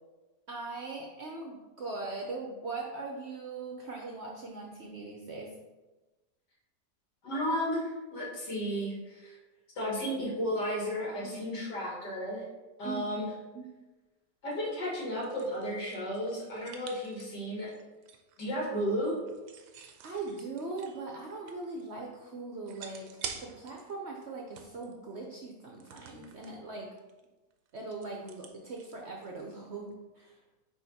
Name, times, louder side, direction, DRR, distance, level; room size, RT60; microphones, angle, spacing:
voice 1, 0.5-5.6 11.2-11.6 12.8-13.3 13.5-13.7 20.0-23.1 23.4-26.9 27.7-30.3, right 3 dB, 60° right, 0 dB, 0.7 m, -40 dB
voice 2, 7.2-7.8 8.1-9.4 9.8-12.4 12.8-13.3 14.4-17.7 18.4-19.1, equal, 80° left, -4 dB, 2.4 m, -33 dB
sound 1, 14.8-18.4 19.2-21.8 22.1-22.2 22.7-23.9 24.2-25.0 25.8-26.6 27.0-27.3 27.5-29.7, right 7 dB, 90° right, 1.2 m, -48 dB
8.5 x 2.9 x 4.0 m, 1.2 s
omnidirectional pair, 1.8 m